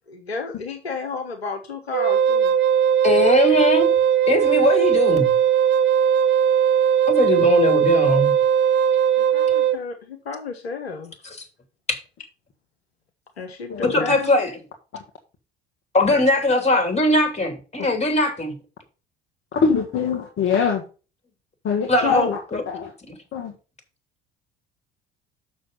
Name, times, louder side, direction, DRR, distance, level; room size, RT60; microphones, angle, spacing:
voice 1, 0.1-2.5 9.2-11.1 13.4-14.3, left 4 dB, 80° left, 5 dB, 1.1 m, -32 dB
Wind instrument woodwind instrument, 1.9-9.8, right 9 dB, 35° right, 0.7 m, -18 dB
voice 2, 3.0-3.9 4.3-5.3 7.1-8.3 11.9-12.0 13.8-14.5 15.9-18.5 21.9-22.6 23.1-23.2, left 2 dB, 20° left, 5 dB, 3.1 m, -20 dB
voice 3, 13.7-14.1 14.9-15.0 17.8-17.9 19.5-20.8 21.6-22.4 22.7-22.9 23.3-23.5, left 6 dB, 40° left, 2 dB, 1.6 m, -23 dB
6.9 x 6.3 x 5.4 m, 0.33 s
figure-of-eight pair, 55°, 31 cm